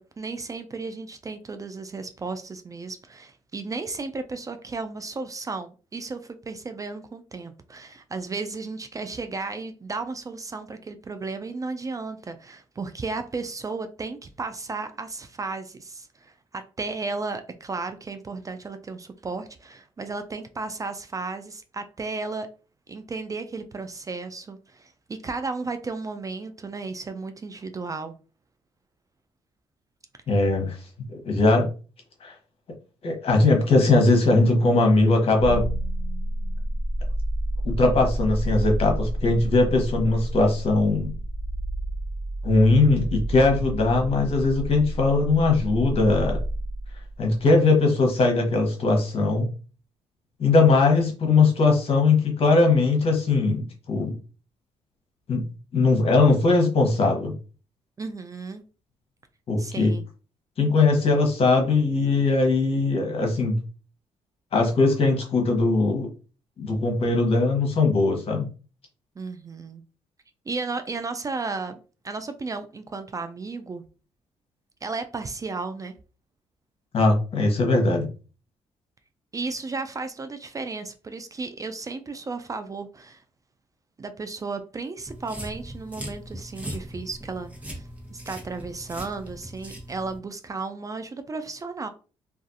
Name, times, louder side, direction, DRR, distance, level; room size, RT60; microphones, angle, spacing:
voice 1, 0.0-22.5 22.9-28.1 58.0-58.6 59.6-60.0 69.2-69.8 70.5-71.8 72.0-73.8 74.8-75.9 79.3-83.2 84.0-91.9, right 3 dB, 25° right, 0.3 m, -34 dB
voice 2, 30.3-30.8 31.1-31.7 32.2-32.3 33.0-35.7 37.6-41.1 42.4-46.4 47.2-49.5 50.4-54.1 55.3-55.4 55.7-57.3 59.5-59.9 60.6-63.6 64.5-66.1 66.6-68.5 76.9-78.1, left 3 dB, 50° left, 0.9 m, -20 dB
sound 1, 35.4-47.5, right 1 dB, 55° right, 1.1 m, -30 dB
sound 2, 85.1-90.2, equal, 10° right, 1.0 m, -39 dB
2.4 x 2.4 x 2.6 m
cardioid pair, 75°, 12 cm